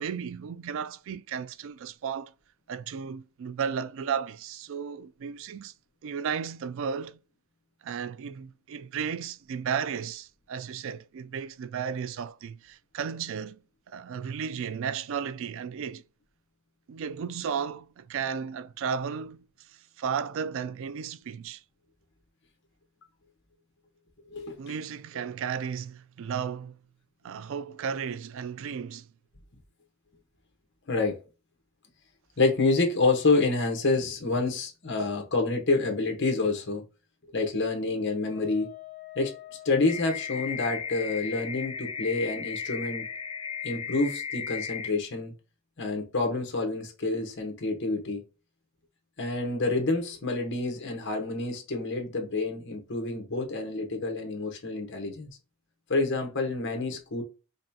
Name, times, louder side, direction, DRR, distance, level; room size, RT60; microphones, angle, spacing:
voice 1, 0.0-2.3 2.7-5.7 6.0-7.2 7.8-13.6 13.9-16.0 16.9-21.6 24.6-26.8 27.2-29.1, right 7 dB, 65° right, 0.3 m, -34 dB
voice 2, 30.9-31.2 32.4-36.9 37.3-38.7 39.1-39.3 39.6-43.1 43.6-45.3 45.8-48.2 49.2-55.3 55.9-57.2, left 3 dB, 60° left, 1.2 m, -28 dB
Wind instrument woodwind instrument, 38.2-43.9, left 15 dB, 40° left, 1.3 m, -50 dB
sound 1, 39.9-44.9, left 7 dB, 25° left, 0.6 m, -35 dB
5.2 x 2.3 x 2.7 m
head